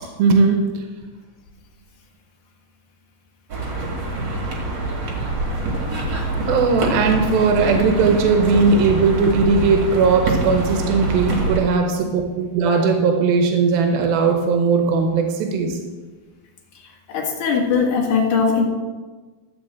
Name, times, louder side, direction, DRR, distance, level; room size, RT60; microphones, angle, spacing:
voice 1, 0.2-0.7 6.5-15.8, right 4 dB, 85° right, 3 dB, 2.9 m, -18 dB
sound 1, 3.5-11.6, right 2 dB, 40° right, 2.0 m, -25 dB
voice 2, 17.1-18.6, left 5 dB, 60° left, -1 dB, 3.0 m, -19 dB
13.5 x 4.8 x 7.5 m, 1.3 s
omnidirectional pair, 4.1 m